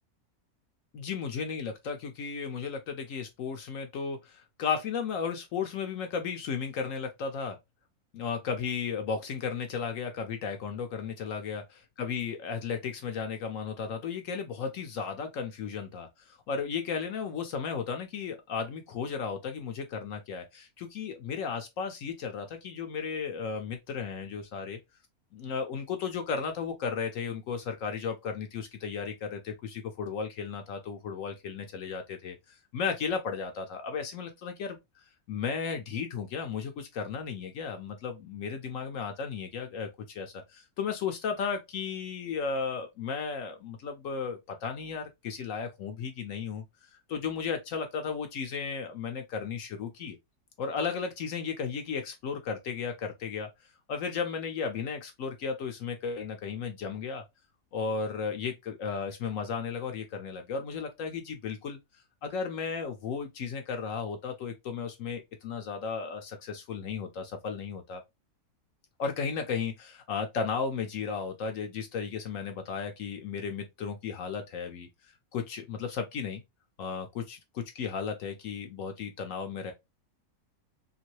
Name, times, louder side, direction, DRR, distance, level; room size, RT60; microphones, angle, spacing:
voice 1, 0.9-7.6 8.1-11.6 12.0-24.8 25.3-34.8 35.3-46.6 46.9-50.2 50.6-53.5 53.9-57.2 57.7-61.8 62.2-68.0 69.0-76.4 76.8-79.7, left 6 dB, 65° left, 0.9 m, -34 dB
2.9 x 2.6 x 2.9 m
omnidirectional pair, 1.6 m